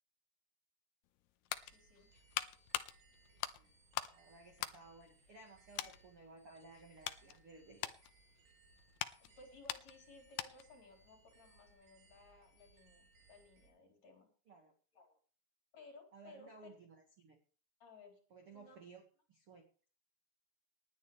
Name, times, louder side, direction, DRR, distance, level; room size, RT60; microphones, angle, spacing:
sound 1, 1.1-4.2 4.5-5.5 5.8-6.0 6.6-10.8 11.1-11.3, left 14 dB, 80° left, 2.7 m, -43 dB
sound 2, 1.5-13.7, right 3 dB, 75° right, 6.6 m, -68 dB
voice 1, 1.6-2.1 9.2-14.3 14.9-15.2 15.7-16.7 17.8-18.2 18.5-18.8, left 3 dB, 40° left, 1 dB, 5.0 m, -59 dB
voice 2, 4.1-7.9 14.5-14.7 16.1-17.4 18.3-19.0 19.3-19.6, right 3 dB, 45° right, 3 dB, 1.9 m, -58 dB
19.5 x 10.5 x 3.3 m, 0.40 s
omnidirectional pair, 5.0 m